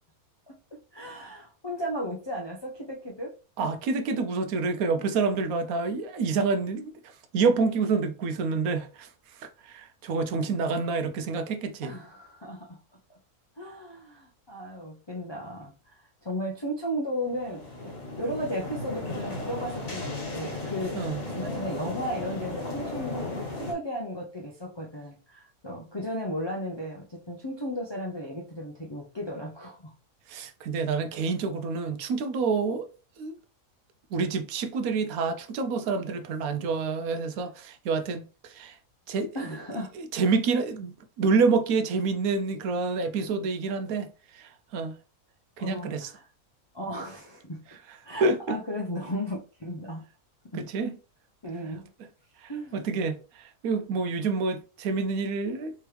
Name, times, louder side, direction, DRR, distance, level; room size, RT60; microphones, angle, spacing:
voice 1, 0.9-3.3 3.6-3.7 11.8-12.8 13.6-15.9 16.2-29.9 39.3-39.9 45.6-46.2 46.7-47.6 48.0-50.0 50.5-50.6 51.4-51.9 52.5-52.8, equal, 40° left, 0.3 m, -35 dB
voice 2, 3.6-6.9 7.3-9.1 9.4-11.9 20.9-21.2 30.3-32.9 33.2-33.4 34.1-38.8 39.1-39.3 40.0-44.9 45.6-46.1 48.2-48.6 50.5-51.0 52.4-55.7, right 4 dB, 75° right, 1.0 m, -28 dB
sound 1, 17.2-23.7, left 2 dB, 65° left, 1.8 m, -35 dB
3.5 x 3.0 x 3.2 m
omnidirectional pair, 1.5 m